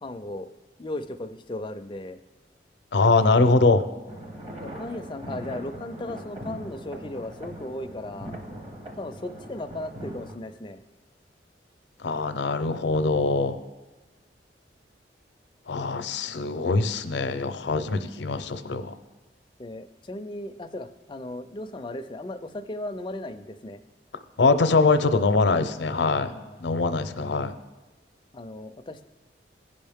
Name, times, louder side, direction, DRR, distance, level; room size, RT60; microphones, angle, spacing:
voice 1, 0.0-0.5 0.8-2.2 3.3-3.4 4.6-8.3 8.9-10.8 16.2-16.4 19.6-23.8 26.2-26.6 28.3-29.0, left 1 dB, 25° left, 8 dB, 0.4 m, -36 dB
voice 2, 2.9-3.9 12.0-13.6 15.7-18.9 24.4-26.3 26.6-27.5, left 3 dB, 75° left, 10 dB, 0.5 m, -23 dB
sound 1, 4.1-10.4, right 1 dB, 30° right, 0.8 m, -40 dB
16.0 x 5.4 x 3.5 m, 1.2 s
head